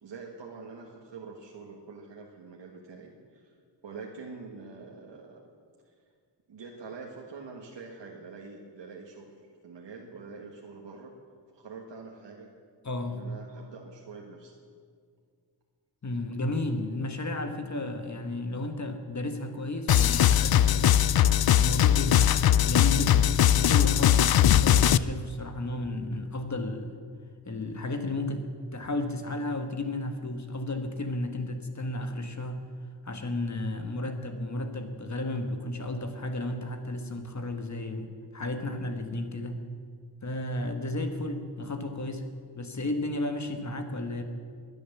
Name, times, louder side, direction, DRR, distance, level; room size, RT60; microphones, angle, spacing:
voice 1, 0.0-3.5 3.8-5.4 5.8-5.9 6.5-9.3 9.6-11.1 11.5-12.5 13.1-14.5, right 4 dB, 75° right, -1 dB, 1.7 m, -45 dB
voice 2, 12.8-13.2 16.0-21.1 21.6-26.9 27.5-32.7 33.0-39.6 40.2-44.2, left 2 dB, 40° left, 6 dB, 1.4 m, -33 dB
sound 1, 19.9-25.0, left 11 dB, 60° left, 0.5 m, -20 dB
21.5 x 9.2 x 7.2 m, 2.1 s
wide cardioid pair, 95°, 43 cm